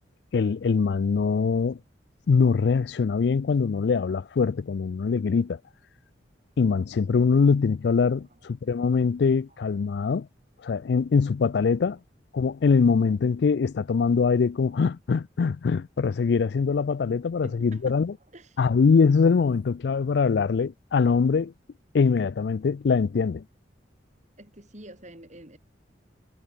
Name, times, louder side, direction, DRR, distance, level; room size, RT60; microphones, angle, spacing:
voice 1, 0.3-1.8 2.3-5.6 6.6-10.3 10.6-12.0 12.3-18.1 18.6-21.5 21.9-23.4, left 5 dB, 60° left, 0.4 m, -23 dB
voice 2, 17.1-18.6 24.4-25.6, right 1 dB, 40° right, 5.2 m, -48 dB
head